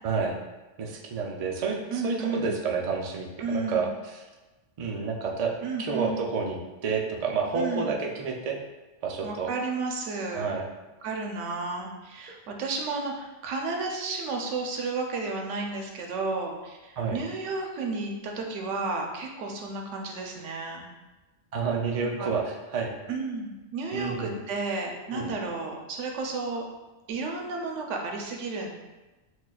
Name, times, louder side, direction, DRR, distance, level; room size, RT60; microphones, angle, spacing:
voice 1, 0.0-0.4 0.8-4.3 4.8-8.6 9.0-9.5 10.3-10.7 17.0-17.2 21.5-22.9 23.9-24.4 25.1-25.3, right 5 dB, 60° right, 0 dB, 0.4 m, -30 dB
voice 2, 1.9-2.5 3.4-3.9 5.6-6.2 7.5-8.0 9.2-10.5 11.0-20.9 22.2-22.3 23.1-26.6 27.1-28.7, right 3 dB, 75° right, 1 dB, 0.9 m, -32 dB
6.1 x 2.3 x 2.3 m, 1.1 s
omnidirectional pair, 1.3 m